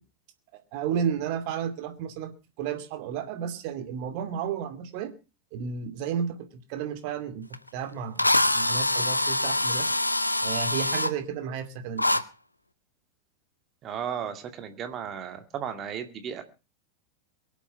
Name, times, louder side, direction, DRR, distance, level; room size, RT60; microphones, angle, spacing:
voice 1, 0.7-2.3 2.6-5.1 5.5-7.5 7.7-10.0 10.4-12.2, right 7 dB, 45° right, 9 dB, 2.5 m, -32 dB
Drill, 7.5-7.6 8.2-11.1 12.0-12.2, left 1 dB, 85° left, 0.7 m, -24 dB
voice 2, 13.8-16.4, right 8 dB, 30° right, 7 dB, 2.2 m, -35 dB
23.0 x 8.3 x 5.8 m, 0.33 s
figure-of-eight pair, 90°, 0 cm